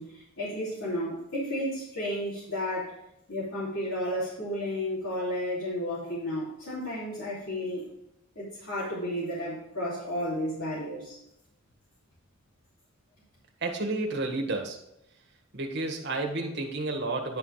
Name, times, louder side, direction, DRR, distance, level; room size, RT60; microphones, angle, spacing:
voice 1, 0.0-3.0 3.3-7.9 8.3-11.2, equal, 70° left, -10 dB, 3.0 m, -32 dB
voice 2, 13.6-14.8 15.5-17.4, right 2 dB, 50° right, 2 dB, 1.5 m, -31 dB
10.5 x 4.5 x 4.8 m, 0.84 s
head